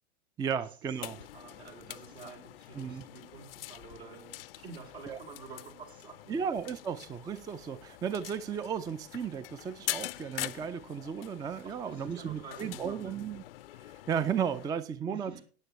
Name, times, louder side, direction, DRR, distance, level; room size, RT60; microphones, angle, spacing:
voice 1, 0.4-1.2 2.8-3.0 5.1-5.2 6.3-13.4 14.1-15.4, right 7 dB, 10° right, 16 dB, 0.4 m, -34 dB
sound 1, 0.9-14.7, left 15 dB, 60° left, 0.6 m, -44 dB
voice 2, 1.0-6.3 11.6-13.2 15.0-15.4, right 4 dB, 75° right, -2 dB, 4.9 m, -49 dB
15.5 x 9.3 x 3.1 m, 0.39 s
figure-of-eight pair, 85°, 33 cm